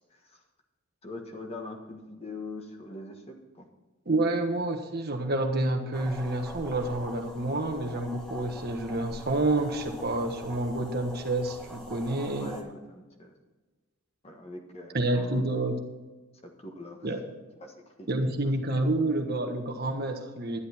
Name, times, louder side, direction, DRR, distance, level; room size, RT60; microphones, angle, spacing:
voice 1, 0.1-0.4 1.0-3.7 12.3-13.3 14.2-15.5 16.4-17.1 17.6-18.3, left 2 dB, 30° left, 3 dB, 1.5 m, -42 dB
voice 2, 4.1-12.5 14.9-15.7 17.0-17.2 18.1-20.6, right 2 dB, 45° right, 4 dB, 1.3 m, -28 dB
sound 1, 5.9-12.6, right 1 dB, 5° left, 1.3 m, -44 dB
11.5 x 10.5 x 4.4 m, 1.2 s
head